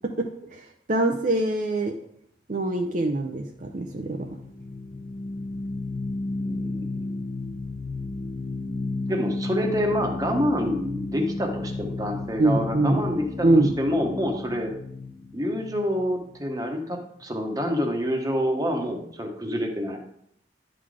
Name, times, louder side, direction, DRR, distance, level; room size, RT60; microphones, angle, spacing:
voice 1, 0.0-2.0 2.5-4.3 12.4-13.0 13.4-13.7, right 2 dB, 45° right, 2 dB, 0.6 m, -24 dB
sound 1, 3.5-16.6, left 3 dB, 45° left, 0.7 m, -33 dB
voice 2, 6.4-7.2 9.1-13.5 13.8-14.7 15.3-20.0, equal, 20° right, 3 dB, 1.1 m, -27 dB
10.5 x 4.0 x 4.8 m, 0.71 s
head